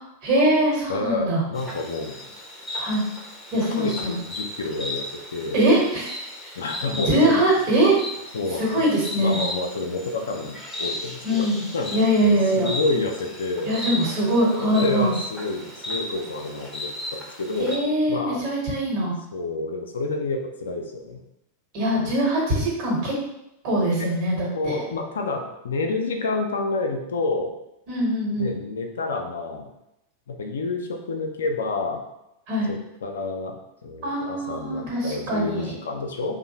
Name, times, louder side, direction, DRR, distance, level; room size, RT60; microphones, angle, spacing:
voice 1, 0.2-1.4 2.8-3.0 3.5-4.1 5.5-6.6 7.0-8.0 8.6-9.4 11.2-11.6 11.9-12.7 13.6-15.1 17.6-19.2 21.7-23.1 23.6-24.8 27.9-28.5 32.5-32.7 34.0-35.7, right 1 dB, 45° right, -4 dB, 1.1 m, -22 dB
voice 2, 0.9-2.3 3.8-5.6 6.6-7.4 8.3-8.9 9.2-11.5 11.7-13.8 14.6-17.7 18.1-18.5 19.3-21.2 22.0-22.1 24.0-24.1 24.5-27.5 28.4-29.7 30.3-32.0 32.7-33.6 33.8-36.4, left 3 dB, 65° left, 3 dB, 0.3 m, -29 dB
Insect, 1.5-17.8, left 1 dB, 5° left, 0.5 m, -36 dB
2.6 x 2.0 x 2.8 m, 0.85 s
figure-of-eight pair, 90°, 0 cm